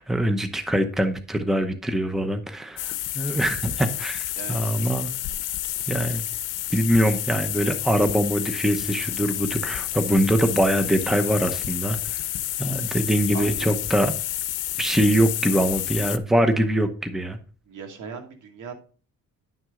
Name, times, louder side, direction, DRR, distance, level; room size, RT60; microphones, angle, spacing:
voice 1, 0.0-5.1 5.9-6.2 6.7-12.0 12.6-14.2 14.8-17.4, right 1 dB, ahead, 8 dB, 0.8 m, -23 dB
sound 1, 2.8-16.2, left 13 dB, 75° left, 0.8 m, -30 dB
voice 2, 4.3-4.7 13.3-13.7 17.7-18.7, right 6 dB, 70° right, 4 dB, 2.5 m, -38 dB
10.5 x 6.2 x 3.7 m, 0.39 s
cardioid pair, 120°, 31 cm